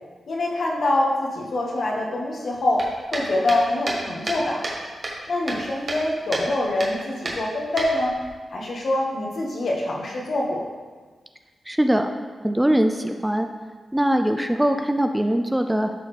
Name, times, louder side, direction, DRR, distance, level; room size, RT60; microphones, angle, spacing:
voice 1, 0.3-2.9 3.1-4.6 5.3-8.2 8.5-10.6, left 1 dB, 60° left, -2 dB, 1.4 m, -24 dB
sound 1, 2.8-4.8 5.0-6.0 6.3-6.5 6.8-6.9 7.3-8.3, right 2 dB, 45° right, 1.3 m, -30 dB
voice 2, 11.7-12.1 12.4-13.5 13.9-15.9, right 1 dB, 5° right, 6 dB, 0.3 m, -21 dB
11.5 x 4.1 x 3.3 m, 1.4 s
wide cardioid pair, 115°, 0 cm